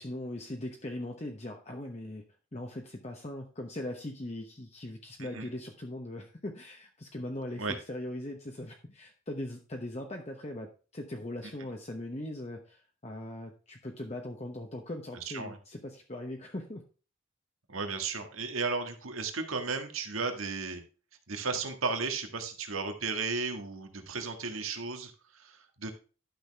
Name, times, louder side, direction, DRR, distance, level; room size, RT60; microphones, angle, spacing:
voice 1, 0.0-2.2 2.5-16.8, left 1 dB, 30° left, 2 dB, 0.9 m, -40 dB
voice 2, 15.2-15.6 17.7-20.8 21.3-25.9, right 4 dB, 85° right, 5 dB, 1.7 m, -34 dB
11.5 x 6.3 x 3.5 m, 0.35 s
head